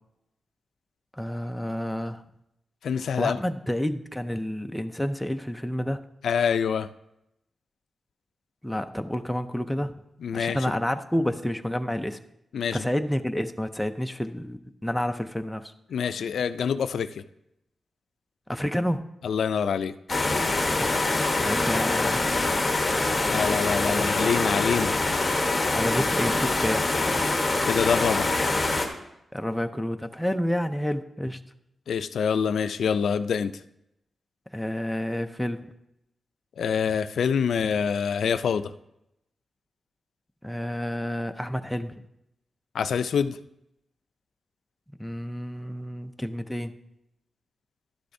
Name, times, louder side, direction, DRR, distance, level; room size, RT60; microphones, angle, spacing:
voice 1, 1.1-2.2 3.1-6.0 8.6-9.9 10.3-12.2 12.7-15.7 18.5-19.1 21.4-22.3 25.8-26.9 29.3-31.4 34.5-35.7 40.4-41.9 45.0-46.7, equal, 5° left, 7 dB, 0.4 m, -29 dB
voice 2, 2.8-3.4 6.2-6.9 10.2-10.6 12.5-12.8 15.9-17.2 19.2-19.9 23.3-24.9 27.7-28.3 31.9-33.6 36.6-38.7 42.7-43.4, left 7 dB, 75° left, 12 dB, 0.3 m, -26 dB
sound 1, 20.1-28.9, left 2 dB, 20° left, 1.1 m, -24 dB
11.5 x 10.0 x 2.7 m, 0.84 s
wide cardioid pair, 165°, 0 cm